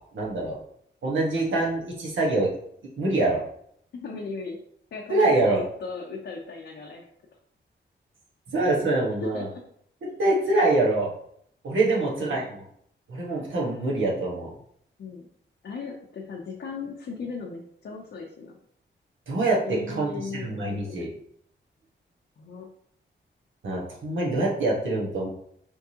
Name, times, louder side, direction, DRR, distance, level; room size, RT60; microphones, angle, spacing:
voice 1, 0.1-0.6 1.0-2.5 3.0-3.4 5.1-5.6 8.5-9.5 10.2-11.1 11.6-12.4 13.1-14.5 19.3-20.1 20.4-21.1 23.6-25.3, right 2 dB, 80° right, -3 dB, 1.3 m, -24 dB
voice 2, 3.9-4.6 4.9-7.1 9.2-9.6 11.8-12.5 15.0-15.3 15.6-18.6 19.6-21.0 22.4-22.7, left 4 dB, 65° left, -1 dB, 0.6 m, -37 dB
4.6 x 3.5 x 2.8 m, 0.68 s
wide cardioid pair, 125°, 20 cm